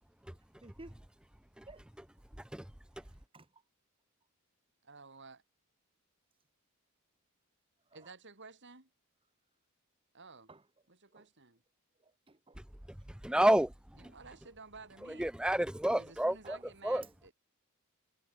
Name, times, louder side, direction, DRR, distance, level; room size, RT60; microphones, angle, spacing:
voice 1, 0.6-1.0 1.7-1.8 3.3-3.5 7.9-8.0 10.5-10.6 11.1-11.3 12.0-12.6 13.3-13.4 16.4-16.6, right 2 dB, 25° right, 1.5 m, -54 dB
voice 2, 4.8-5.4 7.9-8.9 10.1-10.5 10.9-11.6 14.0-15.3 16.0-17.3, right 4 dB, 55° right, 7.2 m, -53 dB
voice 3, 13.2-13.7 14.0-14.1 15.1-16.6 16.8-17.0, right 1 dB, 5° right, 0.5 m, -29 dB
head